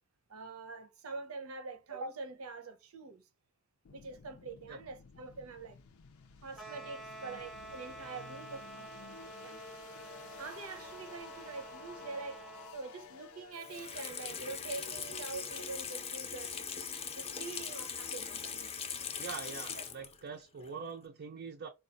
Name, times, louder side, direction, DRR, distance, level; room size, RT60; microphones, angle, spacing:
voice 1, 0.3-3.3 3.9-5.8 6.4-9.6 10.4-12.4 12.7-16.6 17.2-18.7 19.7-19.8, right 3 dB, 90° right, 0.7 m, -45 dB
sound 1, 3.8-16.7, left 6 dB, 80° left, 0.5 m, -54 dB
sound 2, 6.5-12.8, right 2 dB, ahead, 0.7 m, -49 dB
Water tap faucet / Sink (filling or washing), 13.5-20.3 20.6-20.7, left 6 dB, 30° left, 0.5 m, -41 dB
voice 2, 19.2-21.7, right 5 dB, 50° right, 0.4 m, -43 dB
4.0 x 2.3 x 2.5 m
head